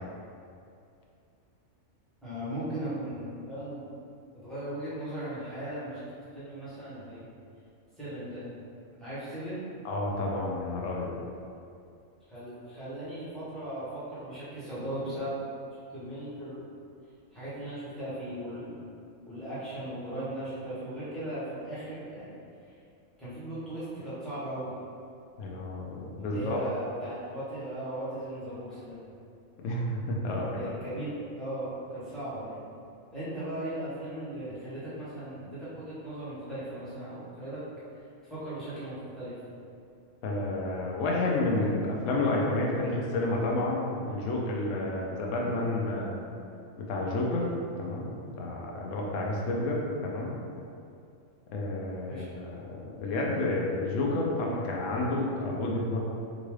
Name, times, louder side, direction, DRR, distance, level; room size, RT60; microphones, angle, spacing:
voice 1, 2.2-3.8 4.3-7.3 8.0-8.5 9.0-9.6 12.3-15.4 15.9-16.6 17.3-18.7 19.2-22.3 22.6-22.8 23.2-24.7 26.2-29.0 30.3-32.6 33.1-37.6 37.9-39.4 52.0-52.2, right 1 dB, ahead, -14 dB, 1.2 m, -38 dB
voice 2, 9.8-11.2 25.4-26.6 29.6-30.7 40.2-46.2 46.9-47.5 47.8-50.3 51.5-56.0, left 2 dB, 70° left, -2 dB, 0.9 m, -30 dB
3.7 x 2.5 x 3.1 m, 2.5 s
omnidirectional pair, 1.5 m